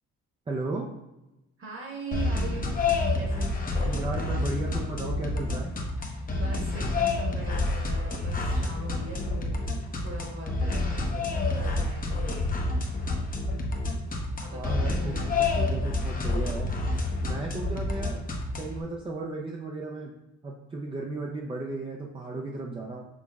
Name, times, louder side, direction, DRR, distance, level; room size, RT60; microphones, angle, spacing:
voice 1, 0.5-0.9 3.8-5.7 14.5-16.7 17.2-18.3 18.6-20.1 20.4-23.1, right 2 dB, 15° right, -1 dB, 0.5 m, -35 dB
voice 2, 1.6-2.8 3.1-4.3 6.3-12.5 14.4-15.3, right 2 dB, 45° right, 0 dB, 1.4 m, -41 dB
sound 1, 2.1-18.8, left 2 dB, 30° left, 0.7 m, -28 dB
6.1 x 2.9 x 2.3 m, 0.97 s
cardioid pair, 90°, 30 cm